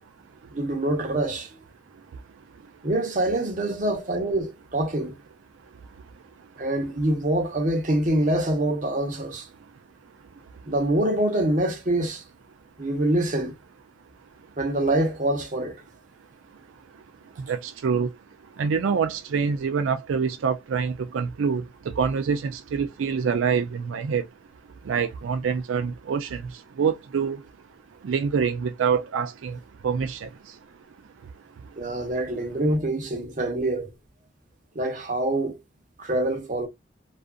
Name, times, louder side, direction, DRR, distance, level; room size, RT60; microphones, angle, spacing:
voice 1, 0.5-1.5 2.8-5.1 6.6-9.5 10.7-12.2 12.8-13.5 14.6-15.8 31.8-33.9 34.7-35.6 36.0-36.7, right 1 dB, 40° right, 0.7 m, -25 dB
voice 2, 16.5-18.1 18.4-24.3 24.8-27.5 27.9-30.8 31.2-32.1, right 6 dB, 90° right, 0.4 m, -27 dB
2.5 x 2.4 x 2.4 m
head